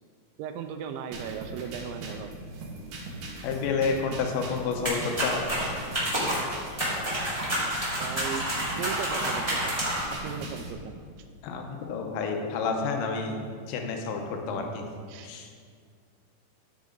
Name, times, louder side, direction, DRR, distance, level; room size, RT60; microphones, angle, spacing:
voice 1, 0.4-2.3 8.0-8.4 8.8-9.8 10.1-11.0 15.1-15.3, right 8 dB, 85° right, 7 dB, 2.8 m, -37 dB
sound 1, 1.1-10.7, right 2 dB, 70° right, 3.1 m, -39 dB
voice 2, 3.4-5.4 11.4-13.4 13.7-14.9 15.2-15.5, left 5 dB, 80° left, 3 dB, 3.1 m, -30 dB
sound 2, 4.8-10.2, equal, 10° right, 1.7 m, -29 dB
14.0 x 6.3 x 3.9 m, 2.1 s
omnidirectional pair, 5.4 m